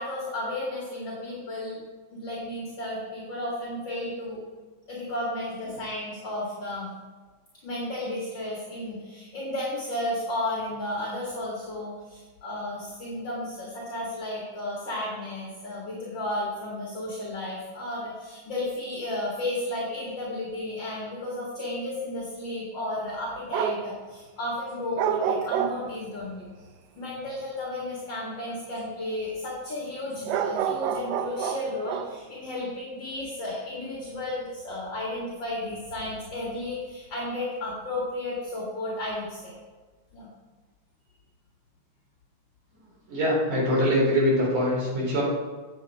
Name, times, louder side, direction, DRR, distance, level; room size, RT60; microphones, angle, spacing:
voice 1, 0.0-1.8 2.1-4.4 4.9-7.0 7.6-26.5 27.0-39.5 40.1-40.3, left 1 dB, 45° left, -5 dB, 2.1 m, -33 dB
sound 1, 23.5-23.9 25.0-26.1 30.2-32.2, right 9 dB, 85° right, 1.4 m, -28 dB
voice 2, 43.1-45.2, equal, 60° right, -5 dB, 4.7 m, -23 dB
8.9 x 7.6 x 4.4 m, 1.3 s
omnidirectional pair, 3.4 m